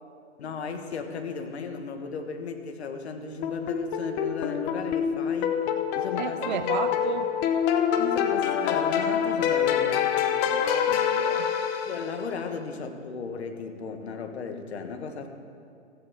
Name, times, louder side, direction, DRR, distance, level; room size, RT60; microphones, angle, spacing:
voice 1, 0.4-5.6 6.0-6.6 8.0-10.1 11.9-15.3, left 5 dB, 60° left, 5 dB, 1.8 m, -35 dB
sound 1, 3.4-12.3, left 8 dB, 25° left, 0.8 m, -26 dB
voice 2, 6.2-7.3 10.5-11.5, right 9 dB, 40° right, 12 dB, 0.7 m, -33 dB
15.5 x 15.0 x 3.8 m, 2.6 s
figure-of-eight pair, 125°, 36 cm